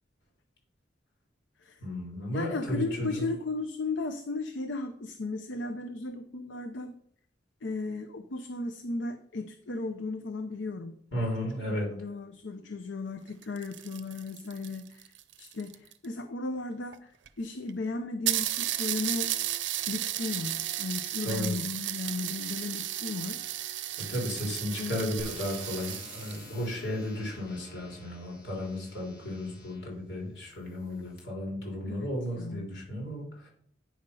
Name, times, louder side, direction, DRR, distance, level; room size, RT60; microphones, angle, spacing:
voice 1, 1.8-3.3 11.1-11.9 21.2-21.5 24.0-33.5, left 1 dB, 70° left, -2 dB, 3.9 m, -34 dB
voice 2, 2.3-7.0 7.6-11.0 11.4-15.1 15.4-17.1 17.4-19.3 19.9-23.5 24.8-25.0 31.9-32.8, left 3 dB, 85° left, 8 dB, 0.6 m, -35 dB
sound 1, 13.3-16.0 16.9-17.0 17.3-17.4 17.7-17.8 18.3-26.4, right 13 dB, 80° right, 0.6 m, -34 dB
sound 2, 25.2-29.9 30.6-31.2, left 2 dB, 55° left, 3.0 m, -50 dB
9.3 x 5.5 x 5.4 m, 0.65 s
head